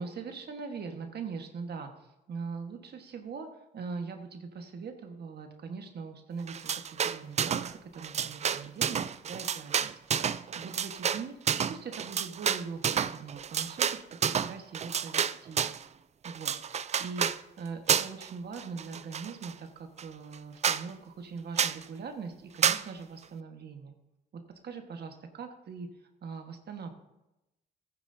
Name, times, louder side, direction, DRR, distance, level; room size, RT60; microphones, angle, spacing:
voice 1, 0.0-3.5 3.7-9.9 10.5-15.6 16.2-16.5 17.0-23.9 24.3-25.9 26.2-26.9, right 5 dB, 55° right, 5 dB, 1.4 m, -41 dB
sound 1, 6.5-7.7 8.0-15.8 16.2-17.4 17.9-18.3 18.6-19.5 20.0-20.1 20.3-20.4 20.6-20.8 21.6-21.8 22.6-22.8, right 8 dB, 35° right, 0.4 m, -30 dB
14.5 x 9.6 x 2.7 m, 0.93 s
cardioid pair, 90°, 20 cm